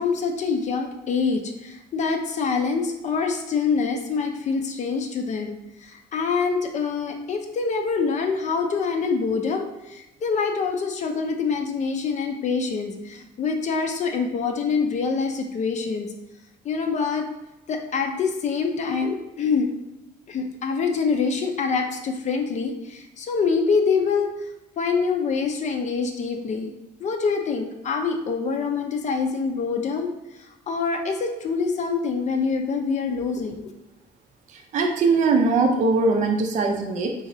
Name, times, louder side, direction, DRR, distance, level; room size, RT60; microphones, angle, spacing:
voice 1, 0.0-5.5 5.8-16.1 16.6-17.3 17.7-19.7 20.3-24.3 24.8-26.7 27.0-30.1 30.7-33.6, left 5 dB, 45° left, 4 dB, 0.5 m, -25 dB
voice 2, 34.5-37.1, right 3 dB, 45° right, 2 dB, 0.4 m, -21 dB
3.8 x 3.1 x 2.6 m, 0.92 s
cardioid pair, 110°, 17 cm